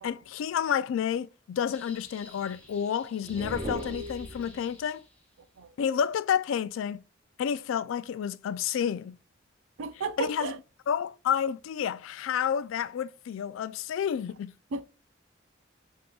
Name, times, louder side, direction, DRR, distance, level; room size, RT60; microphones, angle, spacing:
voice 1, 0.0-5.0 5.8-7.0 7.4-9.2 10.2-10.5 10.9-14.5, left 8 dB, 80° left, 0.3 m, -30 dB
sound 1, 1.7-5.4, left 1 dB, 5° left, 0.7 m, -52 dB
sound 2, 3.2-4.8, right 1 dB, 30° right, 0.6 m, -37 dB
voice 2, 9.8-10.6 14.7-14.8, right 4 dB, 85° right, 0.5 m, -33 dB
6.1 x 3.7 x 2.2 m
head